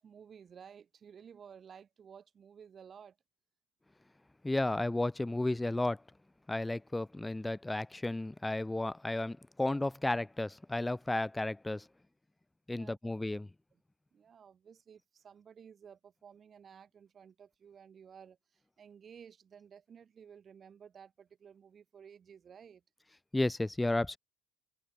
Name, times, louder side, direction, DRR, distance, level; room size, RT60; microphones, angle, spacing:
voice 1, 0.0-3.2 12.7-13.1 14.1-22.8, right 7 dB, 40° right, 6.5 m, -55 dB
voice 2, 4.4-6.0 6.5-11.9 12.7-13.5 23.3-24.2, left 2 dB, 10° left, 0.9 m, -33 dB
open air
hypercardioid pair, 75°, 0 cm